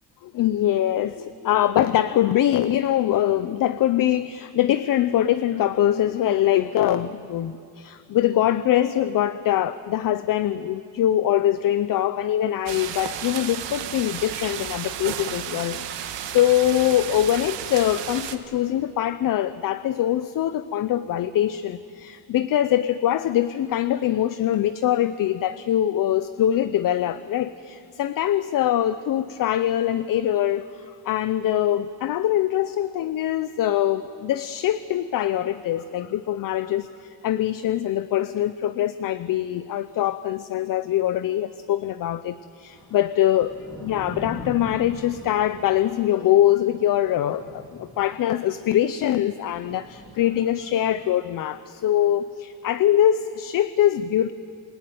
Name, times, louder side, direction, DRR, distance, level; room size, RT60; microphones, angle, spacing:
voice 1, 0.2-43.5 43.8-54.3, left 12 dB, 50° left, 14 dB, 0.6 m, -23 dB
sound 1, 12.7-18.4, right 10 dB, 70° right, 1.5 m, -33 dB
Thunder / Rain, 42.7-51.0, left 1 dB, 10° left, 3.8 m, -42 dB
28.0 x 17.5 x 9.2 m, 2.5 s
cardioid pair, 165°, 45 cm